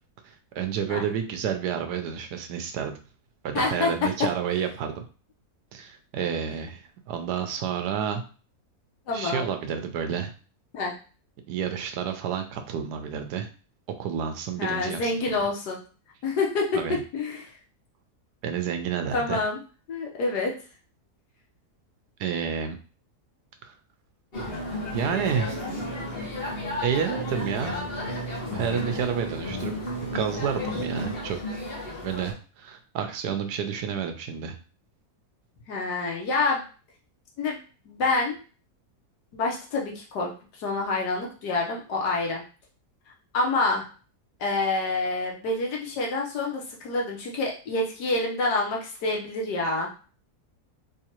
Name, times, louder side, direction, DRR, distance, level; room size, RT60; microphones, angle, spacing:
voice 1, 0.6-2.9 3.4-5.0 5.7-8.2 9.1-10.3 11.5-13.5 13.9-15.1 16.7-17.0 18.4-19.4 22.2-22.8 23.6-23.7 24.9-25.6 26.8-27.7 28.5-29.7 30.1-31.4 32.0-34.6, right 8 dB, 80° right, 7 dB, 1.2 m, -30 dB
voice 2, 3.6-3.9 9.1-9.5 10.7-10.9 14.6-15.8 16.2-17.5 19.1-19.6 19.9-20.6 35.7-36.6 37.4-37.6 37.9-38.4 39.3-40.3 40.6-42.4 43.3-43.8 44.4-49.9, left 3 dB, 85° left, -1 dB, 1.6 m, -27 dB
sound 1, 24.3-32.3, left 1 dB, 40° left, 1.2 m, -32 dB
3.7 x 3.3 x 2.9 m, 0.37 s
omnidirectional pair, 1.7 m